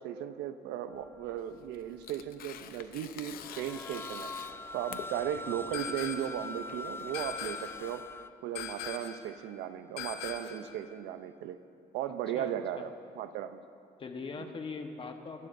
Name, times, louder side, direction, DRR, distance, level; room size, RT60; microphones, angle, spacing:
voice 1, 0.0-8.2 8.4-11.6 11.9-13.6 14.4-14.5, right 10 dB, 85° right, 11 dB, 0.6 m, -37 dB
sound 1, 0.9-1.4 1.7-2.2 2.6-8.3, left 2 dB, 15° left, 0.4 m, -43 dB
Tearing, 1.4-8.2, left 9 dB, 60° left, 0.7 m, -48 dB
sound 2, 5.7-6.5 7.1-7.9 8.5-9.3 10.0-10.7, left 8 dB, 80° left, 1.0 m, -40 dB
voice 2, 12.3-12.9 14.0-15.5, left 4 dB, 30° left, 5 dB, 1.1 m, -41 dB
24.5 x 11.5 x 2.6 m, 2.6 s
cardioid pair, 110°, 17 cm